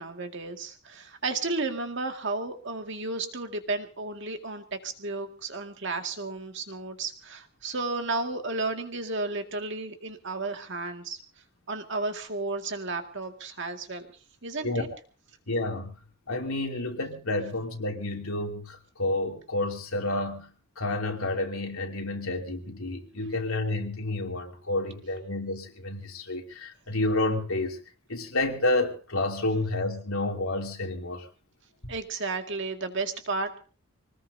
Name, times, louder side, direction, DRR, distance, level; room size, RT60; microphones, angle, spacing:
voice 1, 0.0-11.2 11.7-14.1 14.4-14.9 31.9-33.6, right 3 dB, 55° right, 5 dB, 2.1 m, -33 dB
voice 2, 15.5-15.9 16.3-20.5 20.8-27.8 28.1-31.3, left 2 dB, 80° left, 2 dB, 3.0 m, -30 dB
25.0 x 19.5 x 2.8 m, 0.37 s
head